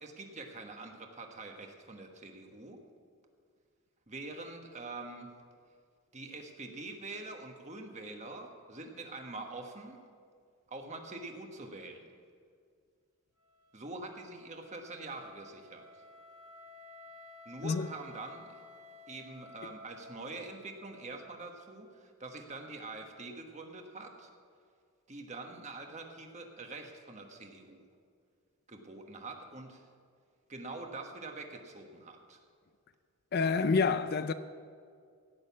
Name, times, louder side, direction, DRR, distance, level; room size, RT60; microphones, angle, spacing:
voice 1, 0.0-2.8 4.1-5.3 6.1-10.0 10.7-12.0 13.7-15.9 17.4-18.6 19.1-24.3 25.1-27.9 28.7-29.8 30.5-32.4, right 2 dB, 30° right, 1.3 m, -45 dB
Wind instrument woodwind instrument, 13.4-21.4, left 2 dB, 80° right, 2.1 m, -55 dB
voice 2, 33.3-34.3, left 4 dB, 45° left, 0.4 m, -28 dB
16.5 x 6.6 x 8.4 m
head